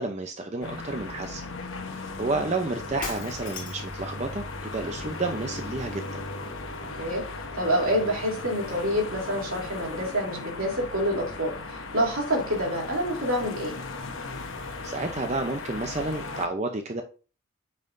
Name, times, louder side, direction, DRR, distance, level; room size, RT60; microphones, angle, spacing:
voice 1, 0.0-1.5 1.9-6.2 14.8-17.0, right 2 dB, 30° right, 5 dB, 0.6 m, -31 dB
sound 1, 0.6-16.5, left 3 dB, 65° left, 1.0 m, -37 dB
Shatter, 3.0-4.0, left 4 dB, 40° left, 1.8 m, -37 dB
voice 2, 7.5-11.5 11.9-13.7 14.3-14.4, equal, 80° right, -2 dB, 3.0 m, -27 dB
9.1 x 5.6 x 2.6 m, 0.36 s
head